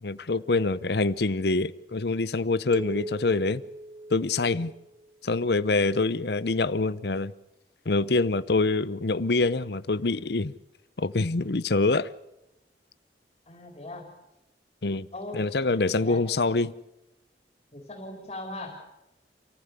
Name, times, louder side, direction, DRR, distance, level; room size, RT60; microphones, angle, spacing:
voice 1, 0.0-3.6 4.1-4.7 5.2-7.3 7.9-10.5 11.0-12.1 14.8-15.1 15.3-16.7, left 3 dB, 65° left, 0.7 m, -25 dB
sound 1, 2.7-5.1, right 1 dB, 25° right, 0.7 m, -40 dB
voice 2, 13.5-14.1 15.1-15.5 16.0-16.2 17.7-18.9, left 2 dB, 35° left, 4.0 m, -39 dB
28.0 x 15.0 x 8.3 m
head